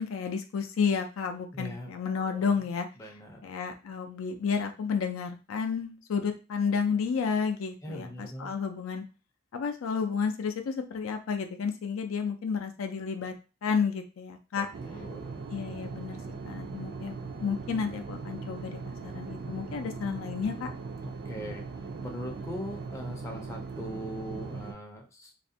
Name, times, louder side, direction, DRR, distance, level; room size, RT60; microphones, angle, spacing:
voice 1, 0.0-2.9 3.4-9.0 9.5-13.3 13.6-14.7 15.5-16.2 16.5-17.1 17.4-20.7, left 6 dB, 80° left, 6 dB, 0.4 m, -31 dB
voice 2, 1.5-2.6 3.0-3.4 7.8-8.5 14.5-15.4 21.0-21.6 22.0-25.3, equal, 15° left, 1 dB, 0.5 m, -41 dB
sound 1, 14.7-24.7, right 4 dB, 50° right, 0.4 m, -39 dB
2.4 x 2.1 x 2.6 m, 0.32 s
head